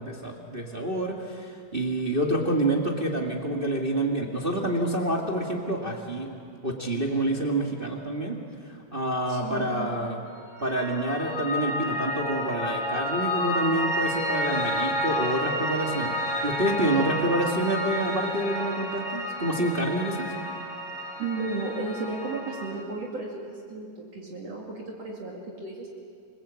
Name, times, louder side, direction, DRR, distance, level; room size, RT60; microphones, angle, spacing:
voice 1, 0.0-6.3 6.6-10.2 10.6-16.1 16.4-20.3, right 1 dB, 25° right, 0 dB, 1.3 m, -28 dB
voice 2, 9.3-9.9 21.2-25.9, right 3 dB, 50° right, -2 dB, 3.4 m, -34 dB
Piano, 10.4-22.8, equal, 30° left, 3.3 m, -30 dB
29.0 x 21.0 x 8.3 m, 2.4 s
omnidirectional pair, 3.9 m